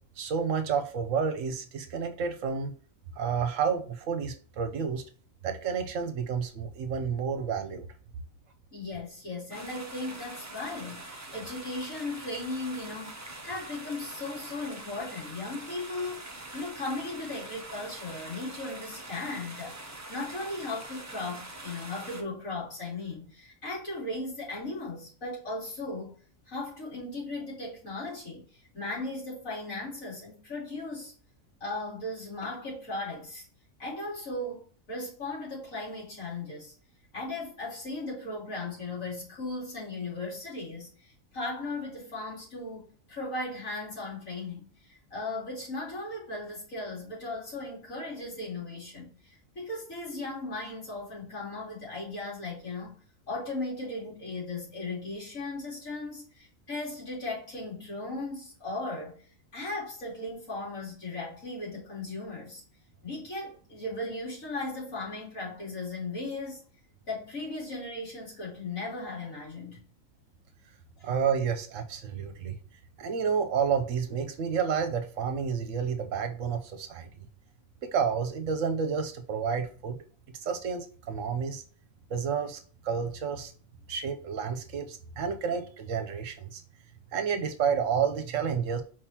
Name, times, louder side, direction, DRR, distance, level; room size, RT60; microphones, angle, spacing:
voice 1, 0.2-2.7 3.2-5.0 5.4-7.9 71.0-72.6 73.0-77.1 77.9-80.0 80.4-81.6 82.1-83.5 83.9-86.6 87.1-88.8, right 6 dB, 70° right, 1.1 m, -30 dB
voice 2, 8.7-26.1 26.5-31.1 31.6-33.4 33.8-36.7 37.1-53.0 53.3-59.2 59.5-62.6 63.0-66.6 67.1-69.8, left 2 dB, 75° left, 2.9 m, -37 dB
sound 1, 9.5-22.2, right 2 dB, 25° right, 0.4 m, -44 dB
4.6 x 3.8 x 2.8 m
omnidirectional pair, 1.4 m